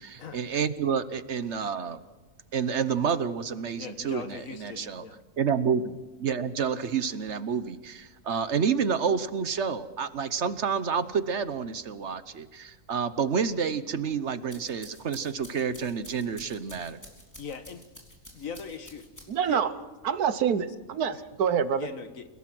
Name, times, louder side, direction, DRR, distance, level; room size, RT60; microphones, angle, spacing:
voice 1, 0.0-2.0 2.5-5.0 5.4-17.0, right 6 dB, 55° right, 13 dB, 1.1 m, -29 dB
voice 2, 3.8-5.2 17.4-17.8 18.3-19.1 19.5-19.6 21.1-21.2 21.7-22.3, left 5 dB, 65° left, 9 dB, 1.6 m, -40 dB
sound 1, 14.3-19.6, equal, 10° left, 3.9 m, -50 dB
voice 3, 19.3-19.7 20.0-21.9, right 7 dB, 85° right, 13 dB, 1.5 m, -26 dB
29.5 x 18.0 x 6.1 m, 1.1 s
omnidirectional pair, 1.6 m